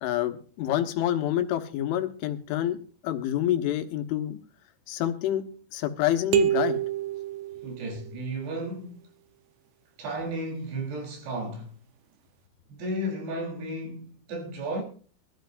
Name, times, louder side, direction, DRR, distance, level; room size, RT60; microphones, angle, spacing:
voice 1, 0.0-2.8 3.0-4.4 4.9-5.4 5.7-6.8, left 12 dB, 80° left, 3.6 m, -27 dB
sound 1, 6.3-8.2, right 13 dB, 75° right, 2.8 m, -27 dB
voice 2, 7.6-9.0 10.0-11.7 12.7-14.8, right 1 dB, 60° right, 5.4 m, -33 dB
22.0 x 13.0 x 2.6 m
omnidirectional pair, 5.6 m